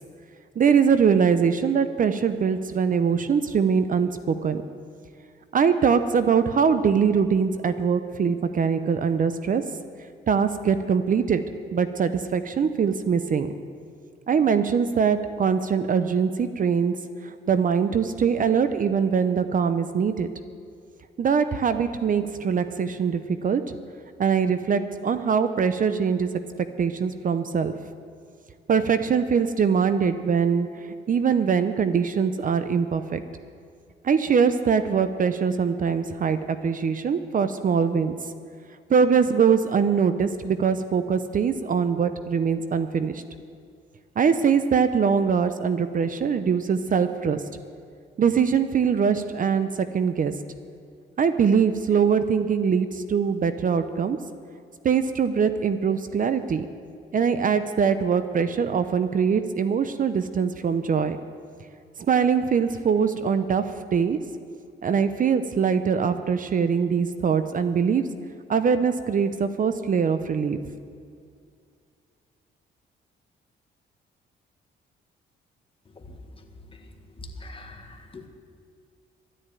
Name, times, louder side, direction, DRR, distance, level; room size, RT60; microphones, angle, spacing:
voice 1, 0.6-4.6 5.5-9.6 10.3-11.4 11.7-13.5 14.3-17.0 17.2-20.3 21.2-23.6 24.2-26.3 26.8-27.7 28.7-30.7 31.1-33.2 34.0-38.1 38.9-43.2 44.2-47.4 48.2-50.3 51.2-54.2 54.8-56.7 57.1-61.2 62.1-64.2 64.8-68.0 68.5-70.6, right 6 dB, 45° right, 11 dB, 0.7 m, -22 dB
voice 2, 77.4-78.3, left 2 dB, 25° left, 4 dB, 1.7 m, -43 dB
12.5 x 10.0 x 8.9 m, 2.3 s
cardioid pair, 90°, 20 cm